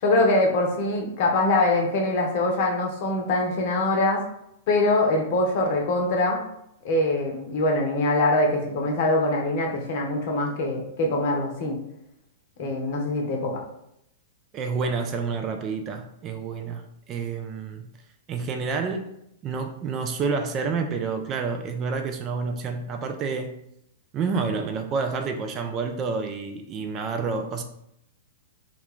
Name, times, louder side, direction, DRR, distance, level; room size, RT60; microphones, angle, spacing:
voice 1, 0.0-4.2 4.7-6.4 6.8-11.8 12.6-13.6, left 2 dB, 50° left, 0 dB, 0.7 m, -23 dB
voice 2, 14.5-17.9 18.3-19.1 19.4-23.6 24.1-27.6, right 4 dB, 30° right, 5 dB, 0.3 m, -29 dB
2.4 x 2.2 x 3.5 m, 0.77 s
figure-of-eight pair, 100°, 0 cm